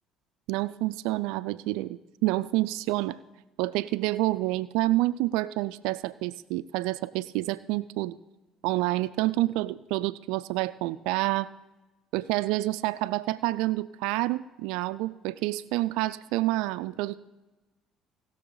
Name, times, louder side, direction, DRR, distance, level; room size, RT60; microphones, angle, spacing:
voice 1, 0.5-3.2 3.6-8.2 8.6-11.5 12.1-17.2, right 18 dB, 80° right, 15 dB, 0.3 m, -28 dB
18.5 x 6.8 x 3.9 m, 1.1 s
hypercardioid pair, 65°, 0 cm